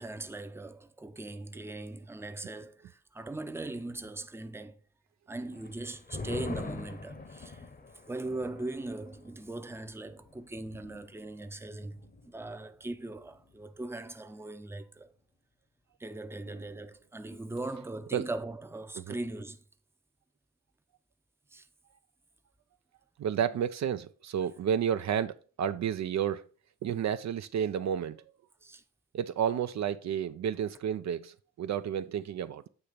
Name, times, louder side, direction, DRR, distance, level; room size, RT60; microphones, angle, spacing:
voice 1, 0.0-4.8 5.3-7.7 8.0-15.1 16.0-19.6 21.5-21.7 28.6-28.8, right 2 dB, 10° right, 0.6 m, -40 dB
sound 1, 5.5-12.5 12.8-12.9 13.2-13.7, left 3 dB, 30° left, 0.8 m, -44 dB
voice 2, 23.2-26.4 26.8-28.2 29.1-32.7, right 9 dB, 65° right, 0.4 m, -31 dB
8.0 x 2.9 x 5.0 m
cardioid pair, 75°, 31 cm